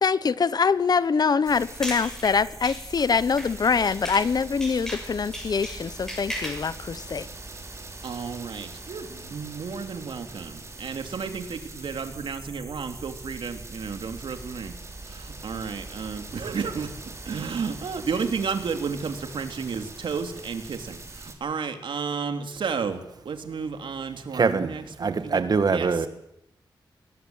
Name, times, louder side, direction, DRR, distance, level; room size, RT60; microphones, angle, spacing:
voice 1, 0.0-7.3, left 5 dB, 55° left, 0.9 m, -24 dB
sound 1, 1.5-4.3 4.6-6.7, equal, 5° left, 7.9 m, -36 dB
sound 2, 1.5-21.3, right 3 dB, 35° right, 5.1 m, -42 dB
voice 2, 8.0-14.7 15.0-25.9, right 5 dB, 80° right, 3.2 m, -32 dB
voice 3, 24.3-24.7 25.0-26.1, right 5 dB, 55° right, 1.9 m, -23 dB
23.5 x 20.5 x 9.2 m
wide cardioid pair, 120°, 8 cm